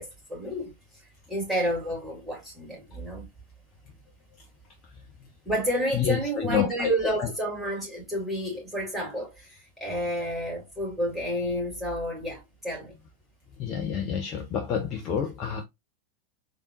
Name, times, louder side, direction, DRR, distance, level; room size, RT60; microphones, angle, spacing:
voice 1, 0.0-3.3 5.4-12.9, equal, 5° right, 3.0 m, -30 dB
voice 2, 5.9-6.9 7.2-7.3 13.6-15.6, left 8 dB, 35° left, 0.8 m, -28 dB
4.0 x 3.6 x 2.6 m
figure-of-eight pair, 90°, 0 cm